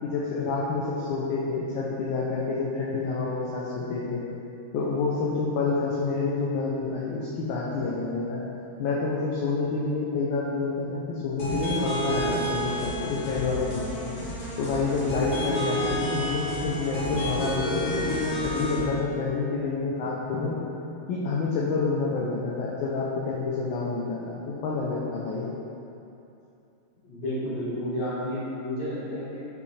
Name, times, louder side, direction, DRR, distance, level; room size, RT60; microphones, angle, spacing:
voice 1, 0.0-4.2 4.7-8.4 8.8-14.0 14.6-20.6 21.1-25.5, left 4 dB, 70° left, -5 dB, 1.4 m, -28 dB
sound 1, 11.4-18.8, right 1 dB, 50° left, 1.7 m, -30 dB
voice 2, 27.0-29.5, equal, 30° left, -9 dB, 1.4 m, -31 dB
7.0 x 5.0 x 3.3 m, 2.8 s
omnidirectional pair, 2.3 m